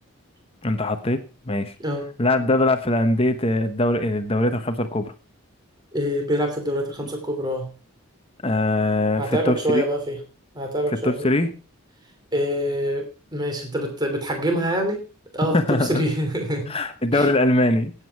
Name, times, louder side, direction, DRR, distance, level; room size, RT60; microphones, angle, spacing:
voice 1, 0.6-1.2 1.5-1.7 2.2-5.1 8.4-9.8 11.0-11.5 15.5-16.0 16.7-17.9, left 1 dB, 25° left, 8 dB, 1.0 m, -21 dB
voice 2, 5.9-7.7 9.2-10.2 10.5-11.3 12.3-13.1 13.3-15.0 15.3-16.7 17.1-17.3, equal, 20° right, 4 dB, 2.9 m, -25 dB
17.0 x 8.4 x 4.6 m, 0.35 s
head